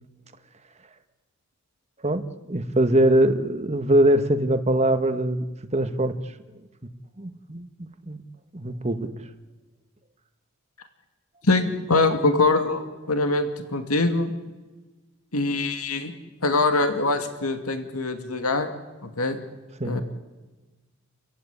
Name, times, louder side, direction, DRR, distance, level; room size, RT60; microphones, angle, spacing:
voice 1, 2.0-5.4 5.7-6.2 7.2-8.2 8.5-9.1 19.8-20.0, right 1 dB, 30° right, 9 dB, 1.4 m, -22 dB
voice 2, 11.4-14.3 15.3-16.1 16.4-18.7 19.0-19.4 19.8-20.0, left 3 dB, 85° left, 7 dB, 2.4 m, -23 dB
30.0 x 15.5 x 9.8 m, 1.2 s
head